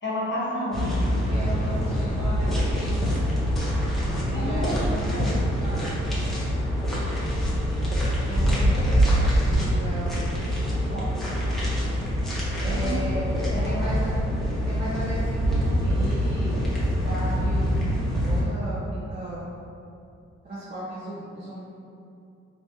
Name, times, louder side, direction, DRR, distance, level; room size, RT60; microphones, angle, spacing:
voice 1, 0.0-1.1 4.3-5.2 12.7-12.9 13.5-13.8, left 1 dB, 40° left, -6 dB, 1.2 m, -30 dB
sound 1, 0.7-18.4, equal, ahead, 1.1 m, -25 dB
voice 2, 1.3-3.2 4.3-5.8 8.3-10.2 10.6-11.1 12.6-14.2 14.6-17.6 18.2-19.5 20.4-21.6, right 1 dB, 35° right, -13 dB, 1.1 m, -35 dB
3.1 x 3.0 x 2.8 m, 2.6 s
cardioid pair, 70°, 30 cm